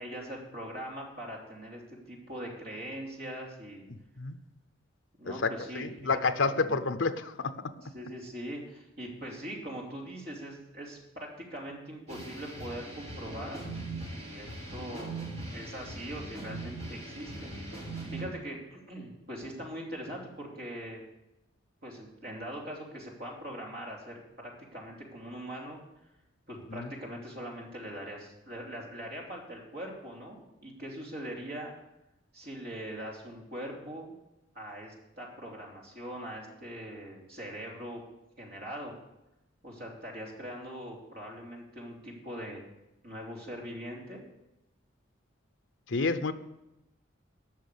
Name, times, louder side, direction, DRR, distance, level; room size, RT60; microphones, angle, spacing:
voice 1, 0.0-1.8 2.1-3.9 5.2-6.1 6.6-6.8 7.8-13.6 14.1-15.2 15.5-21.0 21.8-25.8 26.5-31.7 32.3-34.1 34.5-38.0 38.4-38.9 39.6-42.6 43.0-44.2, equal, 50° right, -1 dB, 3.1 m, -42 dB
voice 2, 5.7-7.5 26.7-26.9 45.9-46.3, left 4 dB, 65° left, 11 dB, 0.8 m, -29 dB
sound 1, 12.1-18.2, right 2 dB, 30° right, 4.6 m, -40 dB
12.0 x 6.5 x 8.4 m, 0.94 s
head